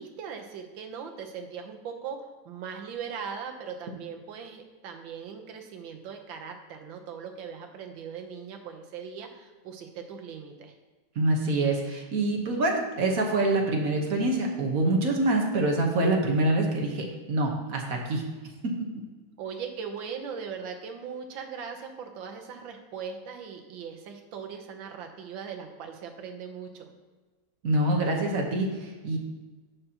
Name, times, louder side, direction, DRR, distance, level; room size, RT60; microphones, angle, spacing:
voice 1, 0.0-2.2 2.4-10.7 19.4-26.9, right 6 dB, 70° right, 4 dB, 1.6 m, -39 dB
voice 2, 11.1-18.2 27.6-29.2, right 2 dB, 50° right, 1 dB, 1.4 m, -25 dB
10.5 x 6.9 x 2.9 m, 1.3 s
omnidirectional pair, 2.3 m